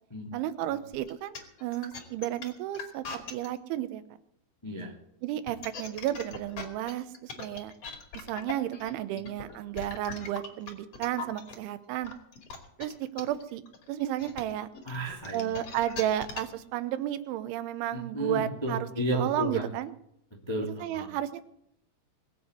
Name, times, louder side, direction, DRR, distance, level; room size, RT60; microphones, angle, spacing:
voice 1, 0.3-4.0 5.2-7.7 8.1-12.1 12.8-13.6 13.9-14.7 15.3-18.9 19.1-19.9 20.8-21.4, right 12 dB, 80° right, 12 dB, 3.3 m, -32 dB
sound 1, 0.9-3.5 5.3-11.5 12.0-16.6, left 5 dB, 40° left, 2.8 m, -40 dB
voice 2, 4.6-4.9 9.1-9.2 14.8-15.5 17.9-19.6 20.5-21.1, right 1 dB, 15° left, 0 dB, 0.8 m, -33 dB
21.0 x 8.1 x 8.0 m, 0.74 s
omnidirectional pair, 5.4 m